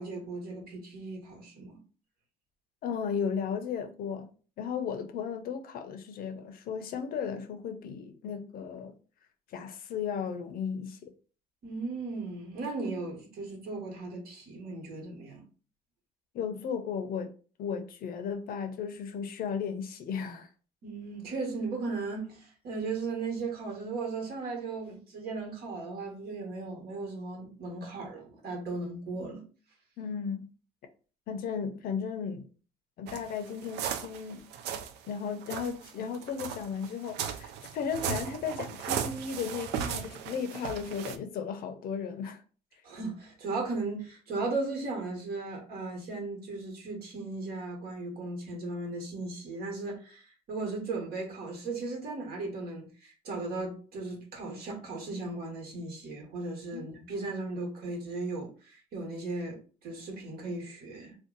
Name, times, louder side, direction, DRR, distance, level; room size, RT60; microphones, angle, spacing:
voice 1, 0.0-1.8 11.6-15.4 20.8-29.4 42.8-61.1, right 3 dB, 65° right, 1.3 m, -36 dB
voice 2, 2.8-4.3 4.6-9.0 9.5-11.1 16.3-17.3 17.6-20.5 30.0-30.5 31.3-32.5 33.0-34.5 35.1-42.4 56.7-56.9, left 6 dB, 60° left, 0.6 m, -35 dB
sound 1, 33.1-35.0 35.4-41.2, right 8 dB, 80° right, 0.4 m, -36 dB
2.6 x 2.2 x 3.8 m
cardioid pair, 110°, 17 cm